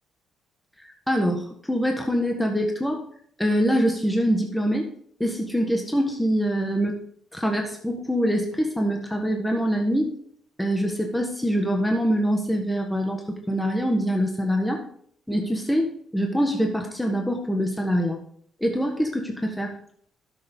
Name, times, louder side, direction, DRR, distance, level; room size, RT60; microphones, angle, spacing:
voice 1, 1.1-3.0 3.4-4.9 5.2-6.9 7.3-10.1 10.6-14.8 15.3-18.2 18.6-19.7, equal, 5° left, 2 dB, 1.4 m, -24 dB
12.0 x 6.7 x 3.7 m, 0.62 s
cardioid pair, 90°, 0 cm